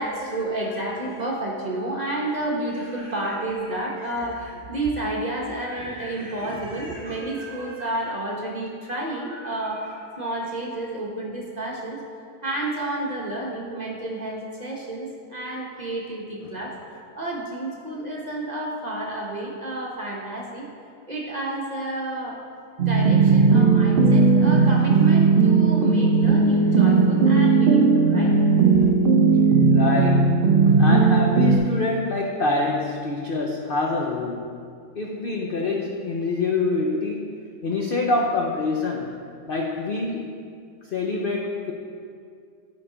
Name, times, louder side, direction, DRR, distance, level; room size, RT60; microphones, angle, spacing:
voice 1, 0.0-12.0 12.4-16.7 17.1-20.7 21.1-22.4 22.8-28.9, right 1 dB, 30° right, -3 dB, 1.0 m, -30 dB
sound 1, 22.8-31.6, right 4 dB, 50° right, 0.7 m, -17 dB
voice 2, 29.7-30.3 30.7-34.5 34.9-37.3 37.6-39.1 39.5-40.3 40.8-41.7, left 3 dB, 55° left, -1 dB, 0.6 m, -26 dB
10.5 x 4.8 x 4.9 m, 2.3 s
omnidirectional pair, 1.7 m